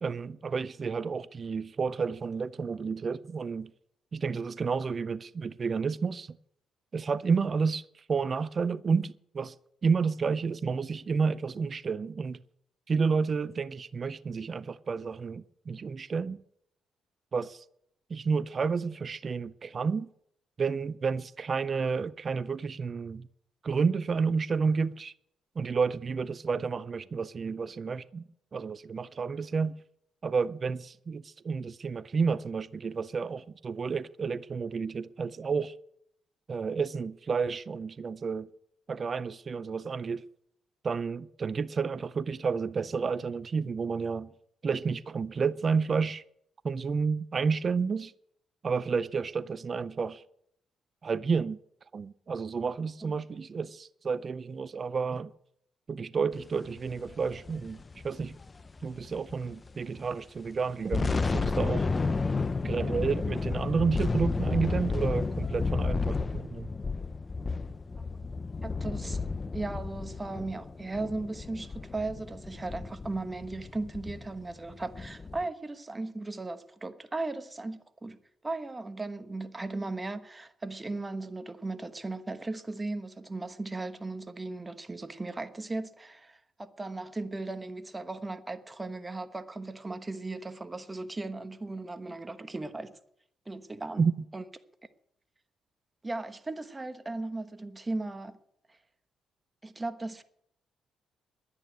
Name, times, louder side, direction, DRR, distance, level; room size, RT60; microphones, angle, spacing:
voice 1, 0.0-3.7 4.1-6.4 6.9-7.8 8.1-9.5 9.8-12.4 12.9-16.4 17.3-17.6 18.1-20.1 20.6-23.3 23.6-25.1 25.6-28.2 28.5-29.8 30.2-35.7 36.5-38.5 38.9-40.2 40.8-44.3 44.6-46.2 46.6-48.1 48.6-50.2 51.0-51.6 51.9-55.3 55.9-58.3 58.8-61.9 62.6-66.7 94.0-94.1, right 5 dB, 40° right, 0.5 m, -30 dB
sound 1, 56.9-59.7 60.0-60.1 60.6-75.4, left 4 dB, 30° left, 0.6 m, -32 dB
voice 2, 68.6-69.3 69.5-78.2 78.4-92.9 93.5-94.0 94.3-94.4 96.0-98.4 98.7-98.8 99.6-100.2, right 2 dB, 20° right, 1.1 m, -37 dB
11.0 x 9.7 x 8.9 m
cardioid pair, 90°, 0 cm